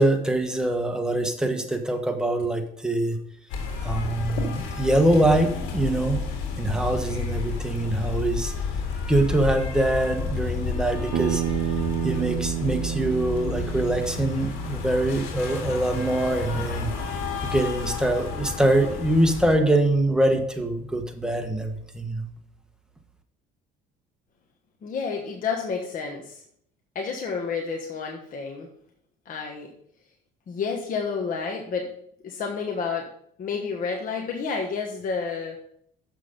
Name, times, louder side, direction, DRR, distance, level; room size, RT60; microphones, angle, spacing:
voice 1, 0.0-3.2 3.8-6.2 6.6-8.5 9.1-11.4 12.0-16.9 17.4-22.3, right 1 dB, 5° right, 4 dB, 1.3 m, -24 dB
sound 1, 3.5-19.6, left 5 dB, 85° left, 2.2 m, -31 dB
Bass guitar, 11.1-15.4, right 14 dB, 60° right, 0.6 m, -30 dB
voice 2, 24.8-26.4 26.9-28.7 29.2-29.7 30.5-31.9 32.2-33.0 33.4-35.6, left 5 dB, 45° left, 1 dB, 1.3 m, -30 dB
7.2 x 6.2 x 5.2 m, 0.67 s
supercardioid pair, 95°, 19 cm